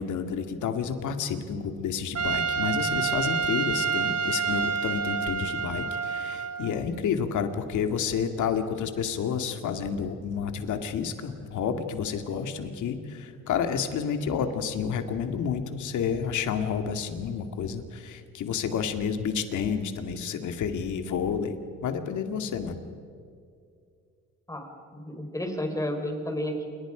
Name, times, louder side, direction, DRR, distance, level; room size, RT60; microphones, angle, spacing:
voice 1, 0.0-21.6 21.8-22.8, left 7 dB, 75° left, 7 dB, 2.3 m, -30 dB
Trumpet, 2.1-6.7, right 5 dB, 55° right, 1.4 m, -28 dB
voice 2, 24.9-26.7, left 1 dB, 10° left, 4 dB, 4.7 m, -31 dB
28.0 x 23.0 x 5.1 m, 2.3 s
cardioid pair, 90°, 30 cm